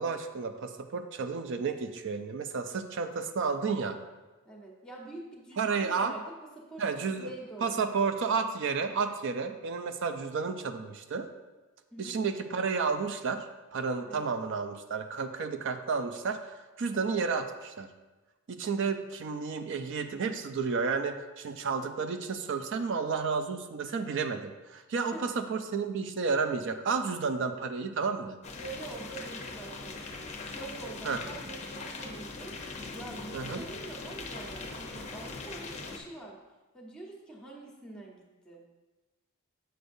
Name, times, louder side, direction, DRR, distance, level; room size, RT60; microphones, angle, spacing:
voice 1, 0.0-4.0 5.6-6.1 6.8-7.3 7.6-11.3 12.0-17.9 18.5-28.4 31.0-31.2 33.3-33.6, right 5 dB, 60° right, 8 dB, 0.4 m, -31 dB
voice 2, 4.4-7.9 11.9-12.2 14.1-14.3 25.1-25.4 28.5-30.0 30.4-36.4 36.7-38.7, right 2 dB, 5° left, -1 dB, 1.1 m, -45 dB
sound 1, 28.4-36.0, left 3 dB, 30° left, 0.7 m, -41 dB
7.9 x 6.4 x 2.6 m, 1.2 s
head